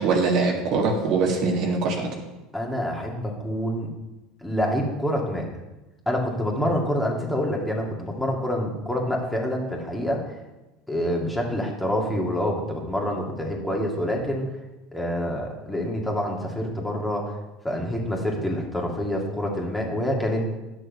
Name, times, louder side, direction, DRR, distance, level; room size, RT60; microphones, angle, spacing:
voice 1, 0.0-2.1, right 4 dB, 55° right, 1 dB, 1.8 m, -22 dB
voice 2, 2.5-3.9 4.4-5.5 6.1-10.4 10.9-14.5 14.9-17.4 17.6-20.4, equal, 5° left, -1 dB, 2.2 m, -27 dB
10.0 x 6.6 x 5.4 m, 1.0 s
hypercardioid pair, 85°, 0 cm